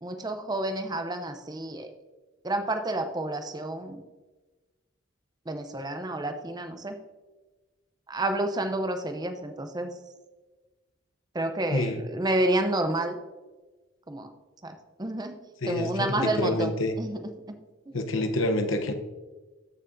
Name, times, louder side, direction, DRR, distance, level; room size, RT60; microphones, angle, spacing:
voice 1, 0.0-1.9 2.4-4.0 5.5-7.0 8.1-9.9 11.3-13.2 14.1-14.3 14.6-15.4 15.7-18.0, right 1 dB, 20° right, 7 dB, 0.6 m, -30 dB
voice 2, 15.6-16.9 17.9-18.9, left 2 dB, 75° left, 6 dB, 0.9 m, -27 dB
13.5 x 6.0 x 2.6 m, 1.2 s
head